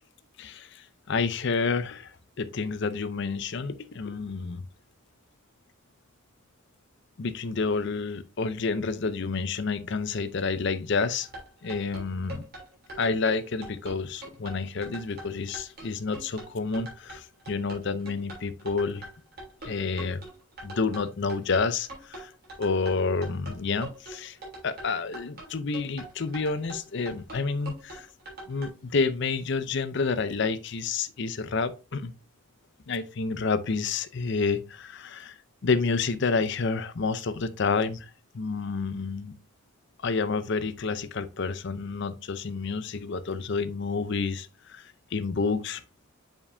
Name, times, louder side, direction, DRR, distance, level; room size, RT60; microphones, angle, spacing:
voice 1, 0.4-4.6 7.2-11.3 11.6-12.4 13.0-19.1 19.6-20.2 20.6-22.3 22.6-24.4 24.6-28.1 28.5-32.1 32.9-35.3 35.6-39.3 40.0-45.8, left 4 dB, 55° left, 0.6 m, -29 dB
sound 1, 11.2-28.7, right 1 dB, 45° right, 3.2 m, -42 dB
7.2 x 5.2 x 2.6 m
head